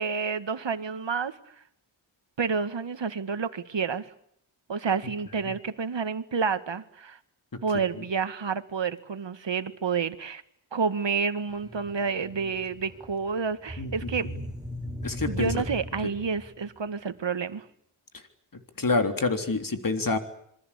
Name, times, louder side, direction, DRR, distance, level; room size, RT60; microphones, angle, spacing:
voice 1, 0.0-1.4 2.4-4.1 4.7-7.2 7.6-10.4 10.7-14.3 15.3-17.7, right 5 dB, 65° right, 11 dB, 2.1 m, -29 dB
sound 1, 11.5-16.7, equal, 10° right, 3.4 m, -38 dB
voice 2, 13.8-14.4 15.0-15.6 16.0-16.1 18.1-18.2 18.5-20.2, left 3 dB, 45° left, 7 dB, 3.5 m, -28 dB
26.5 x 22.5 x 8.5 m, 0.72 s
wide cardioid pair, 75°, 47 cm